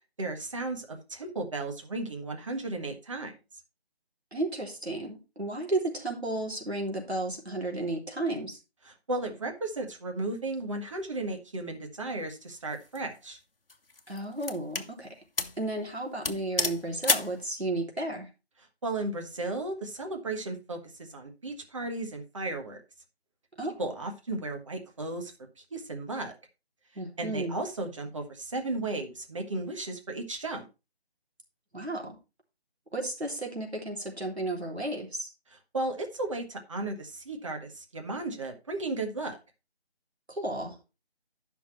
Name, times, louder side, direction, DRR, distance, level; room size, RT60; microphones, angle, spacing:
voice 1, 0.2-3.3 9.1-13.4 18.8-20.8 21.1-22.8 23.8-25.3 25.7-26.3 27.2-30.7 35.5-39.4, right 2 dB, 30° right, 4 dB, 1.6 m, -34 dB
voice 2, 4.3-8.6 14.1-15.2 15.6-18.3 23.6-23.9 27.0-27.6 31.7-32.2 32.9-35.3 40.3-40.8, right 2 dB, 80° right, 1 dB, 3.5 m, -33 dB
sound 1, 12.7-13.0 13.7-14.9 15.4-15.6 15.9-16.0 16.2-17.4, left 3 dB, 60° left, 1.1 m, -30 dB
11.0 x 6.0 x 4.3 m, 0.28 s
figure-of-eight pair, 160°, 31 cm